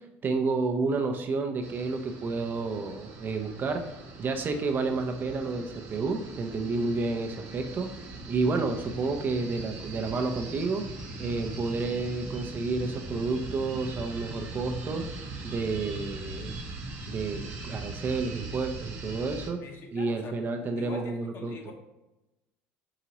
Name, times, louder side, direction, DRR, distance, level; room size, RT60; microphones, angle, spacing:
voice 1, 0.2-3.8 4.2-7.9 8.3-10.8 11.2-15.0 15.4-16.6 17.1-19.6 19.9-21.6, right 3 dB, 35° right, 4 dB, 0.5 m, -30 dB
sound 1, 1.6-19.5, right 2 dB, 55° right, 1.0 m, -40 dB
voice 2, 19.6-20.4 20.8-21.7, left 4 dB, 45° left, 3 dB, 0.9 m, -43 dB
4.8 x 2.9 x 2.9 m, 0.98 s
supercardioid pair, 100°, 5 cm